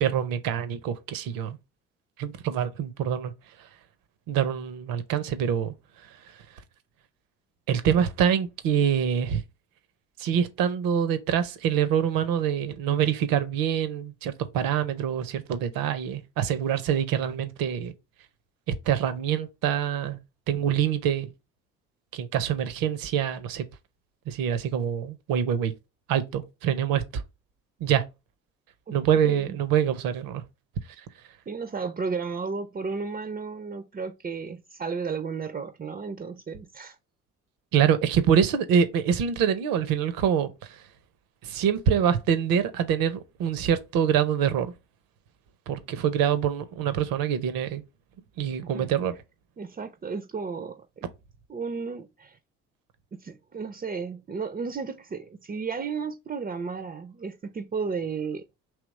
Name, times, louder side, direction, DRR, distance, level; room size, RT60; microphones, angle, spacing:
voice 1, 0.0-1.6 2.2-3.3 4.3-5.7 7.7-9.4 10.2-17.9 18.7-20.2 20.5-21.3 22.1-23.6 24.3-25.7 26.1-27.2 27.8-28.0 28.9-30.4 37.7-40.5 41.4-44.7 45.7-47.8 48.4-49.1, right 8 dB, 70° right, 0.7 m, -25 dB
voice 2, 29.2-29.6 31.5-37.0 48.6-48.9 49.6-51.1 51.5-52.4 53.2-58.5, right 5 dB, 25° right, 0.5 m, -33 dB
3.5 x 2.9 x 4.0 m
hypercardioid pair, 55°, 35 cm